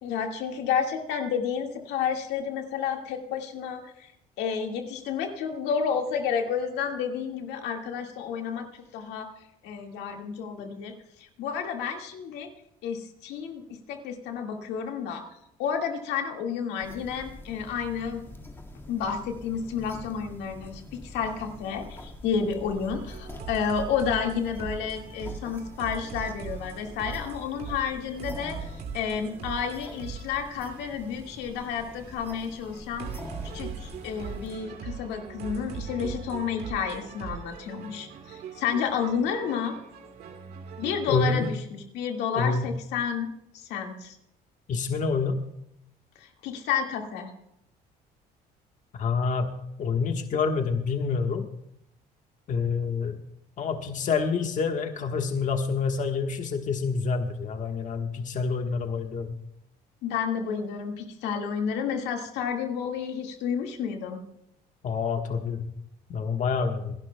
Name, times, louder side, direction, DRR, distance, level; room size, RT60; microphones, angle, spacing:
voice 1, 0.0-4.1 4.4-8.7 8.9-9.3 9.6-10.9 11.4-12.5 12.8-13.6 13.9-15.2 15.6-18.2 18.9-33.1 33.5-39.8 40.8-43.3 43.7-44.2 46.2-47.3 60.0-64.2, left 7 dB, 90° left, 3 dB, 1.9 m, -30 dB
sound 1, 16.8-34.6, left 1 dB, 15° left, 1.8 m, -45 dB
sound 2, 22.9-41.5, right 6 dB, 75° right, 2.6 m, -41 dB
voice 2, 41.1-41.5 42.3-42.7 44.7-45.4 48.9-49.5 49.8-51.5 52.5-53.2 53.6-59.3 64.8-65.7 66.1-66.9, left 5 dB, 50° left, 4 dB, 1.3 m, -27 dB
27.0 x 11.5 x 2.2 m, 0.79 s
cardioid pair, 110°, 17 cm